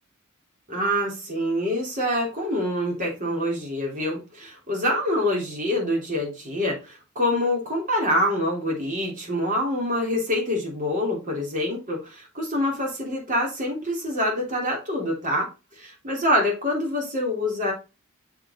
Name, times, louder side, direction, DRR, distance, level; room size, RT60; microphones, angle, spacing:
voice 1, 0.7-15.5 16.0-17.7, left 1 dB, 40° right, -1 dB, 2.8 m, -25 dB
6.8 x 4.5 x 4.1 m, 0.29 s
head